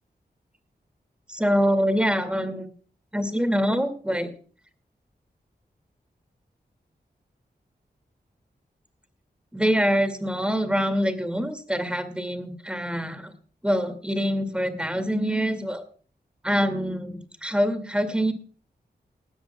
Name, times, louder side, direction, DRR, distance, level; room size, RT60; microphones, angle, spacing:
voice 1, 1.3-2.7 3.1-4.3 9.5-13.3 13.6-15.8 16.4-18.3, equal, 5° right, 9 dB, 2.3 m, -25 dB
19.0 x 13.5 x 2.3 m, 0.41 s
wide cardioid pair, 75°, 17 cm